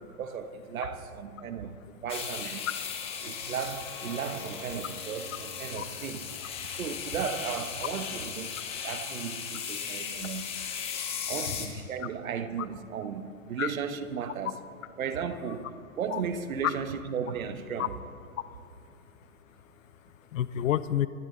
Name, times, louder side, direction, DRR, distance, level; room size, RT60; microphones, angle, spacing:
voice 1, 0.1-2.7 3.2-6.4 6.7-8.6 8.8-10.5 11.3-14.5 15.0-15.7 16.0-17.9, right 7 dB, 70° right, 1.2 m, -35 dB
sound 1, 2.1-11.7, left 7 dB, 15° left, 1.0 m, -37 dB
voice 2, 2.9-3.3 5.8-5.9 6.7-6.8 8.5-8.6 9.8-10.3 10.9-11.6 13.6-13.7 16.1-16.2 16.6-16.7 17.8-17.9 18.3-18.9 19.2-21.1, left 12 dB, 65° left, 0.7 m, -33 dB
sound 2, 4.1-10.1, right 2 dB, 25° right, 3.2 m, -52 dB
24.5 x 11.5 x 3.9 m
hypercardioid pair, 155°, 43 cm